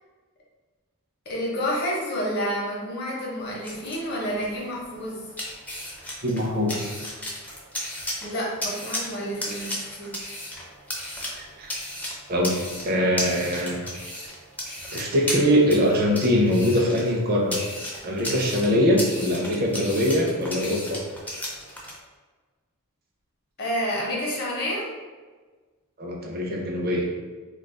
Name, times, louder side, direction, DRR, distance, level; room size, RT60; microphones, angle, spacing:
voice 1, 1.3-5.2 8.2-10.1 23.6-24.9, equal, 45° left, -4 dB, 0.8 m, -29 dB
sound 1, 3.4-22.0, left 1 dB, 5° left, 0.4 m, -35 dB
voice 2, 6.2-6.9 11.6-11.7 12.3-12.5 12.8-13.8 14.9-17.6 18.0-21.0 26.0-27.0, equal, 45° right, -1 dB, 0.5 m, -22 dB
2.4 x 2.3 x 3.6 m, 1.4 s
head